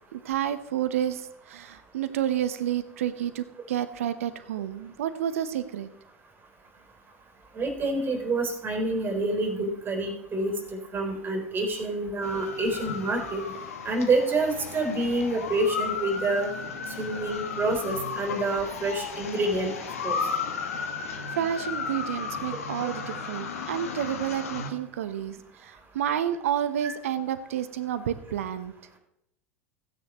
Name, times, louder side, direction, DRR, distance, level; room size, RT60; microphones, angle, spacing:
voice 1, 0.1-5.9 21.3-28.7, right 10 dB, 70° right, 13 dB, 1.0 m, -30 dB
voice 2, 7.5-13.4 13.8-16.5 17.0-19.7 20.0-20.2 26.8-26.9, right 2 dB, 25° right, 2 dB, 3.7 m, -27 dB
sound 1, 12.2-24.7, left 5 dB, 75° left, 1.7 m, -34 dB
16.5 x 9.5 x 3.1 m, 0.81 s
figure-of-eight pair, 80°, 8 cm